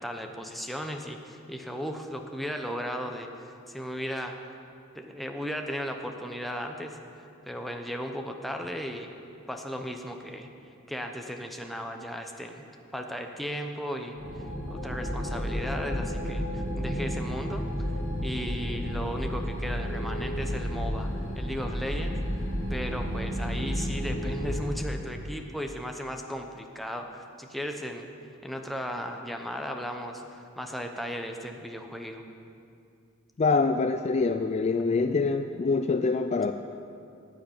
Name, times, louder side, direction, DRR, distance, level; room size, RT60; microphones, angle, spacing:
voice 1, 0.0-4.4 4.9-9.1 9.5-10.5 10.9-12.6 12.9-14.2 14.7-17.9 18.2-21.1 21.3-22.2 22.7-28.1 28.4-32.2, equal, ahead, 3 dB, 0.8 m, -36 dB
sound 1, 14.2-24.7, equal, 55° left, 3.3 m, -31 dB
voice 2, 33.4-36.5, left 4 dB, 30° left, 8 dB, 0.3 m, -25 dB
10.0 x 9.4 x 8.9 m, 2.5 s
head